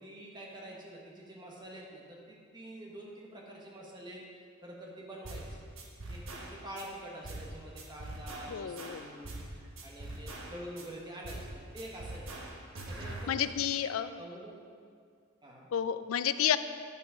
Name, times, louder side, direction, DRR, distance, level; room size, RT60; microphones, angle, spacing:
voice 1, 0.0-4.3 4.6-5.6 6.1-12.4 12.9-14.5 15.4-15.7, right 1 dB, 20° right, -3 dB, 1.4 m, -47 dB
sound 1, 5.2-5.5 5.8-6.8 7.2-7.5 7.8-9.5 9.8-10.8 11.2-11.5 11.8-13.2, right 2 dB, 80° right, 1.3 m, -43 dB
voice 2, 8.5-9.0 13.3-14.1 15.7-16.6, left 9 dB, 80° left, 13 dB, 0.4 m, -30 dB
8.5 x 7.1 x 5.0 m, 2.1 s
head